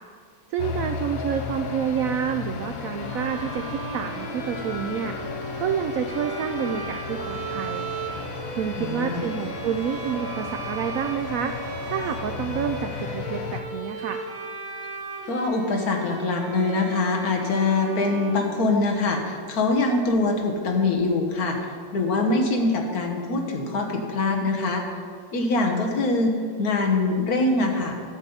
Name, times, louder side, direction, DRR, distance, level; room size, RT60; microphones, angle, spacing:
voice 1, 0.5-7.9 8.5-14.2, right 8 dB, 90° right, 6 dB, 0.7 m, -29 dB
sound 1, 0.6-13.6, left 5 dB, 90° left, 1.5 m, -34 dB
Bowed string instrument, 3.0-19.1, right 3 dB, 60° right, 1.8 m, -36 dB
voice 2, 8.8-9.2 15.3-24.9 25.3-28.0, left 3 dB, 55° left, 2 dB, 1.6 m, -24 dB
12.5 x 7.2 x 5.5 m, 2.1 s
omnidirectional pair, 2.0 m